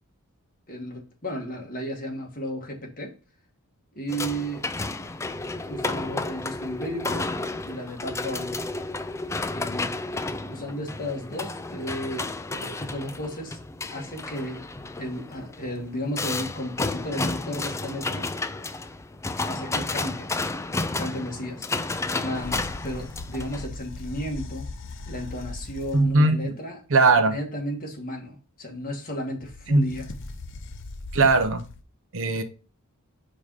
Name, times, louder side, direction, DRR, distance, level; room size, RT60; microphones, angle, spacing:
voice 1, 0.7-3.1 3.9-4.7 5.7-7.3 7.6-8.6 9.5-13.6 13.9-14.6 15.0-18.3 19.5-20.3 20.9-21.7 22.2-24.7 25.1-26.8 27.1-30.1, equal, 40° left, 0 dB, 1.9 m, -34 dB
sound 1, 4.1-23.7, left 3 dB, 15° left, 0.3 m, -32 dB
sound 2, 22.3-26.2 29.4-31.8, left 2 dB, 55° left, 0.7 m, -39 dB
voice 2, 25.9-26.5 26.9-27.3 29.7-29.9 31.1-31.6 32.1-32.4, right 3 dB, 60° right, 10 dB, 0.8 m, -19 dB
5.1 x 4.1 x 4.8 m, 0.33 s
head